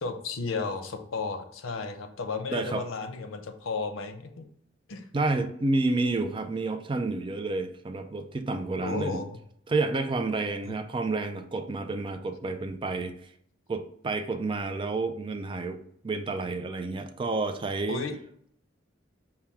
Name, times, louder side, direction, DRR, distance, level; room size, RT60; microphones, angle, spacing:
voice 1, 0.0-4.4 4.9-5.1 8.8-9.4 10.6-10.8 17.9-18.2, left 4 dB, 90° left, 7 dB, 0.6 m, -33 dB
voice 2, 2.5-2.8 5.1-9.2 9.7-13.1 13.7-18.1, right 3 dB, 25° right, 7 dB, 0.3 m, -30 dB
5.7 x 2.2 x 3.4 m, 0.66 s
head